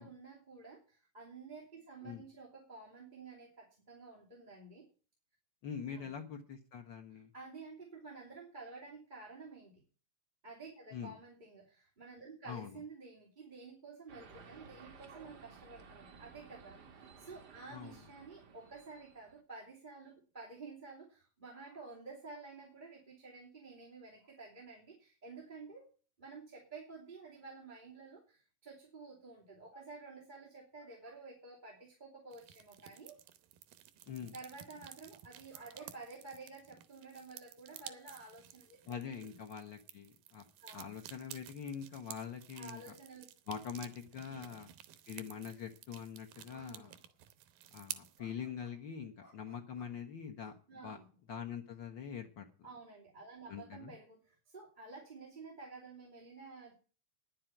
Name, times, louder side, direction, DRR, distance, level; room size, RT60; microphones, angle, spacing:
voice 1, 0.0-4.9 5.9-6.1 7.1-9.7 10.4-25.9 26.2-33.2 34.3-39.3 40.6-40.9 42.5-43.3 44.3-44.6 46.5-46.9 50.7-51.0 52.6-56.7, right 4 dB, 15° right, -4 dB, 2.5 m, -51 dB
voice 2, 5.6-7.3 10.9-11.1 12.5-12.8 17.7-18.0 34.1-34.3 38.9-40.4 40.7-42.8 43.5-44.7 45.1-46.9 47.7-50.5 50.8-51.0 51.3-52.5 53.5-53.9, left 7 dB, 75° left, 4 dB, 1.0 m, -44 dB
sound 1, 14.1-19.4, right 5 dB, 50° right, 1.2 m, -56 dB
sound 2, 32.3-48.2, right 12 dB, 85° right, 2.6 m, -53 dB
sound 3, 45.8-45.9 46.5-46.7 47.1-47.2 48.2-48.8 49.2-49.9 50.4-51.2, left 1 dB, 15° left, 3.1 m, -63 dB
10.0 x 7.6 x 9.1 m, 0.38 s
omnidirectional pair, 3.8 m